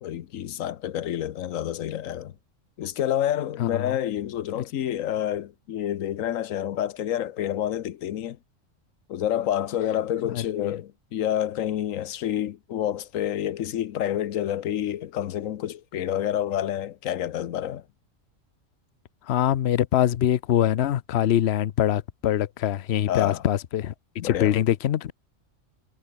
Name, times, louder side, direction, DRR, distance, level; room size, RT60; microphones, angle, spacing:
voice 1, 0.0-2.3 2.8-8.4 9.1-17.8 23.1-23.4 24.2-24.6, left 11 dB, 80° left, 1.2 m, -28 dB
voice 2, 3.6-4.0 4.6-4.7 10.3-10.7 19.3-23.9 24.2-25.1, left 11 dB, 60° left, 0.9 m, -24 dB
omnidirectional pair, 1.4 m